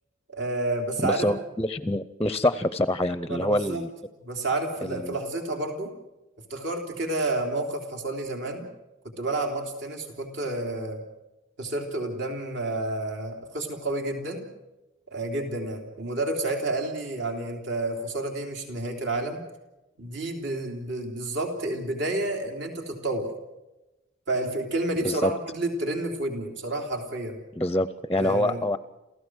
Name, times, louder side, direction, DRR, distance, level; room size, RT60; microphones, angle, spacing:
voice 1, 0.3-1.3 3.3-3.8 4.2-5.9 6.5-8.7 9.2-11.0 11.6-14.5 15.1-19.4 20.0-23.3 24.3-27.4 28.2-28.6, right 2 dB, 65° right, 3 dB, 3.2 m, -30 dB
voice 2, 1.0-3.9 4.8-5.2 25.0-25.3 27.6-28.8, left 1 dB, 15° left, 14 dB, 0.6 m, -26 dB
28.0 x 15.5 x 6.3 m, 1.0 s
head